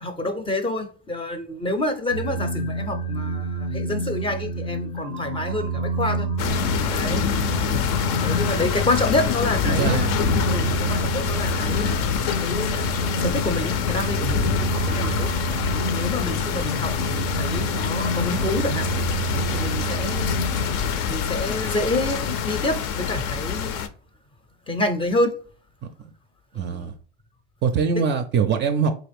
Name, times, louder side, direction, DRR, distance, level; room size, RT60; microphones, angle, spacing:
voice 1, 0.0-6.3 6.9-7.3 8.2-12.0 12.4-15.3 15.7-18.9 19.3-20.4 21.1-23.8 24.7-25.3 26.6-26.9, left 1 dB, 15° left, 0.6 m, -28 dB
sound 1, 2.1-20.8, right 3 dB, 90° left, 1.1 m, -29 dB
sound 2, 6.4-23.9, left 7 dB, 60° left, 0.6 m, -25 dB
voice 2, 9.7-10.0 26.5-26.9 27.6-28.9, right 6 dB, 35° right, 0.4 m, -22 dB
4.0 x 2.4 x 3.4 m
hypercardioid pair, 95°, 34 cm